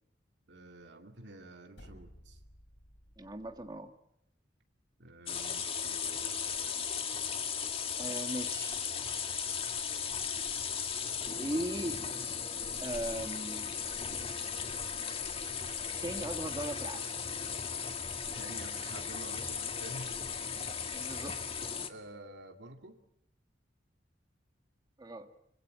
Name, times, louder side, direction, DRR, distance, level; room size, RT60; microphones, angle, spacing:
voice 1, 0.5-2.4 5.0-6.4 18.3-20.4 20.8-21.1 21.9-23.0, right 1 dB, 70° right, 4 dB, 2.4 m, -49 dB
sound 1, 1.7-3.8, equal, 75° left, 3.8 m, -56 dB
voice 2, 3.2-3.9 8.0-8.7 11.4-12.1 12.8-13.7 16.0-17.1 20.9-21.5 25.0-25.3, right 1 dB, 25° right, 6 dB, 1.7 m, -38 dB
sound 2, 5.3-21.9, left 6 dB, 30° left, 1.9 m, -36 dB
25.0 x 24.0 x 7.7 m, 0.76 s
head